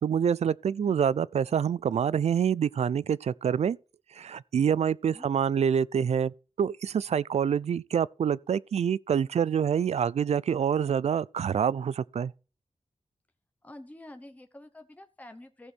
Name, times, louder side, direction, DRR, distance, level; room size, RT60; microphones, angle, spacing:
voice 1, 0.0-3.8 4.1-12.3, right 8 dB, 70° right, 0.4 m, -26 dB
voice 2, 4.8-5.3 13.6-15.7, left 1 dB, 15° left, 0.9 m, -48 dB
15.5 x 6.4 x 4.2 m
wide cardioid pair, 115°, 11 cm